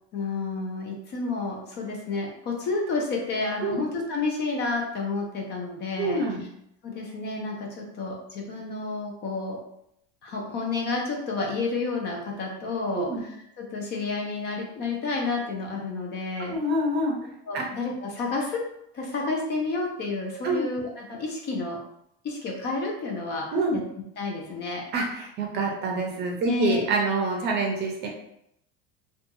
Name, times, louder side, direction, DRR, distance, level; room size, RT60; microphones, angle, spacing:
voice 1, 0.1-6.2 6.8-9.6 10.2-13.3 13.6-16.5 17.5-18.6 18.9-21.8 22.2-23.5 23.7-23.8 24.2-24.8 26.5-27.0, left 3 dB, 35° left, 0 dB, 0.5 m, -30 dB
voice 2, 6.0-6.4 13.0-13.2 16.5-17.2 17.5-17.7 20.4-20.6 23.5-23.8 24.9-28.1, right 2 dB, 35° right, 0 dB, 0.6 m, -26 dB
2.6 x 2.3 x 2.6 m, 0.77 s
cardioid pair, 150°, 29 cm